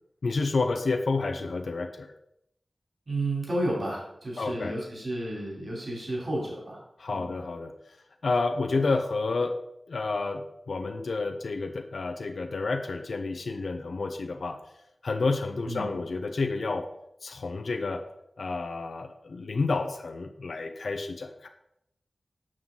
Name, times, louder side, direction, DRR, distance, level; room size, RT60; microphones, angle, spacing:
voice 1, 0.2-2.1 4.4-4.8 7.0-8.0 8.2-9.6 9.9-14.6 15.0-16.9 17.2-18.0 18.4-21.5, left 3 dB, 80° left, 6 dB, 0.6 m, -30 dB
voice 2, 3.1-6.8 7.1-7.3 15.7-16.0, right 1 dB, 55° right, -4 dB, 3.2 m, -32 dB
7.4 x 6.2 x 3.8 m, 0.78 s
cardioid pair, 45°, 0 cm